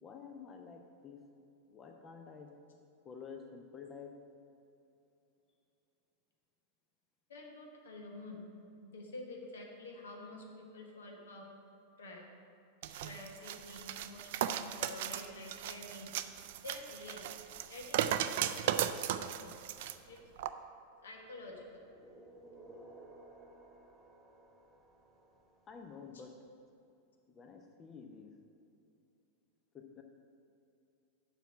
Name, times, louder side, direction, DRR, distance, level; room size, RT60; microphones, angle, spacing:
voice 1, 0.0-1.3 1.7-2.6 3.0-4.3 25.7-26.4 27.3-28.4 29.7-30.0, left 5 dB, 25° left, 4 dB, 0.7 m, -50 dB
voice 2, 7.3-8.4 8.8-11.5 12.0-12.2 12.8-16.1 16.6-17.2 17.7-19.6 20.1-20.2 21.0-21.8 26.1-26.2, left 2 dB, 65° left, 1 dB, 1.3 m, -49 dB
sound 1, 12.8-20.0 20.4-20.5, right 11 dB, 50° right, 0.3 m, -36 dB
sound 2, 21.1-26.1, right 2 dB, ahead, 1.0 m, -57 dB
7.2 x 5.6 x 5.8 m, 2.7 s
figure-of-eight pair, 90°, 0 cm